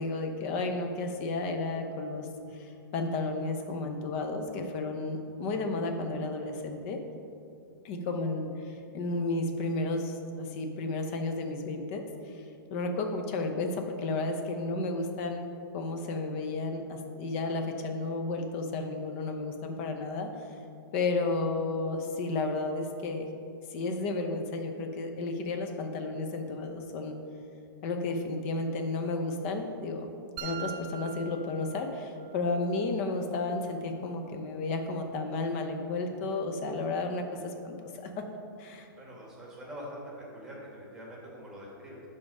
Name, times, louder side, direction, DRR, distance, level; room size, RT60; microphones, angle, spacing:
voice 1, 0.0-7.0 7.8-12.4 12.7-15.4 15.7-20.3 20.9-23.3 23.7-27.2 27.8-30.1 30.4-38.3 38.6-38.9, left 3 dB, 35° left, 5 dB, 0.8 m, -32 dB
sound 1, 30.4-32.4, right 8 dB, 25° right, 0.4 m, -42 dB
voice 2, 39.0-42.0, equal, 5° right, -4 dB, 1.4 m, -44 dB
10.5 x 3.6 x 5.4 m, 2.6 s
hypercardioid pair, 160°, 12 cm